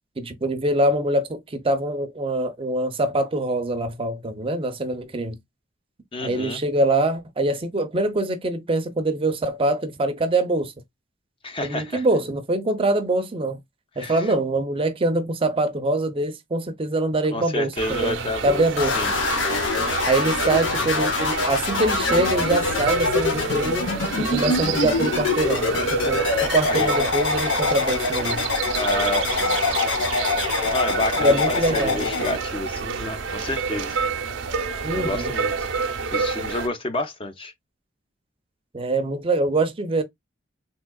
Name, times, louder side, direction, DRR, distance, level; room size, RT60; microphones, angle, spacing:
voice 1, 0.2-5.4 6.2-10.7 11.6-13.6 14.0-19.0 20.1-28.5 31.2-32.1 34.8-35.3 38.7-40.0, right 2 dB, 30° right, 0.5 m, -24 dB
voice 2, 6.1-6.6 11.4-12.1 14.0-14.3 17.3-18.6 18.9-19.1 26.6-27.0 28.7-29.6 30.7-34.0 34.9-35.7 36.1-37.5, left 2 dB, 30° left, 0.5 m, -29 dB
sound 1, 17.8-36.7, right 5 dB, 85° right, 0.6 m, -29 dB
sound 2, 18.8-32.4, left 3 dB, 80° left, 0.8 m, -24 dB
3.6 x 2.7 x 2.2 m
head